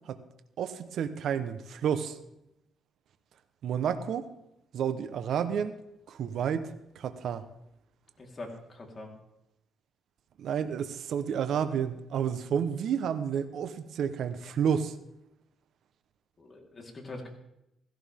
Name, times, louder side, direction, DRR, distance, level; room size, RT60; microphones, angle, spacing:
voice 1, 0.6-2.2 3.6-4.3 4.7-5.8 6.1-7.4 10.4-14.9, right 8 dB, 70° right, 10 dB, 1.1 m, -30 dB
voice 2, 8.2-9.1 16.4-17.3, left 2 dB, 30° left, 0 dB, 4.0 m, -43 dB
16.5 x 15.5 x 3.7 m, 0.82 s
cardioid pair, 90°, 0 cm